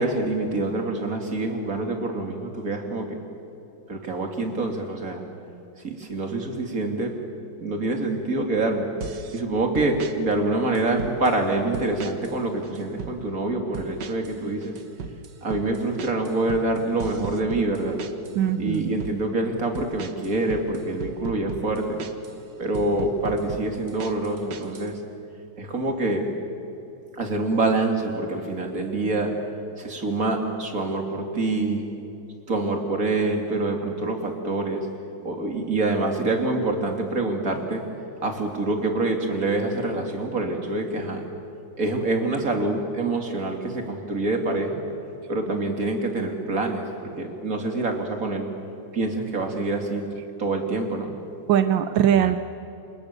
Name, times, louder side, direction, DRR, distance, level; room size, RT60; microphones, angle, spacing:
voice 1, 0.0-3.2 3.9-5.2 5.8-7.1 7.6-8.9 9.3-14.7 15.4-18.0 18.6-22.0 22.6-25.0 25.6-26.3 27.1-29.3 29.8-31.8 32.5-34.9 35.2-37.8 38.2-41.2 41.8-44.8 45.3-48.5 48.9-50.0 50.4-51.1, right 2 dB, 45° right, 3 dB, 3.3 m, -26 dB
sound 1, 9.0-9.4 9.8-10.2 10.8-11.4 11.7-12.4 12.6-13.2 13.7-14.4 14.6-18.4 18.7-19.2 19.8-22.4 22.7-24.9, right 5 dB, 65° right, 1.9 m, -36 dB
voice 2, 18.4-19.0 51.5-52.4, right 10 dB, 85° right, 9 dB, 1.6 m, -21 dB
28.5 x 27.0 x 6.9 m, 3.0 s
omnidirectional pair, 2.0 m